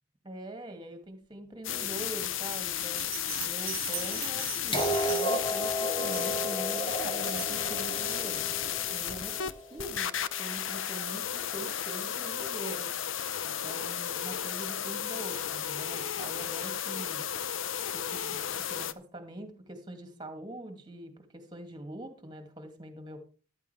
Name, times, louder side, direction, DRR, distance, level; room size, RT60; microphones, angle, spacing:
voice 1, 0.2-8.4 8.9-10.1 10.4-12.9 13.4-17.3 17.9-23.2, right 1 dB, 20° right, 6 dB, 2.3 m, -43 dB
sound 1, 1.6-18.9, left 10 dB, 65° left, 0.7 m, -33 dB
Bell, 2.9-5.6 6.1-6.4 6.9-7.6, right 16 dB, 75° right, 1.0 m, -41 dB
sound 2, 4.7-10.6 11.7-11.8, equal, 25° left, 2.3 m, -33 dB
14.0 x 11.0 x 3.4 m, 0.36 s
head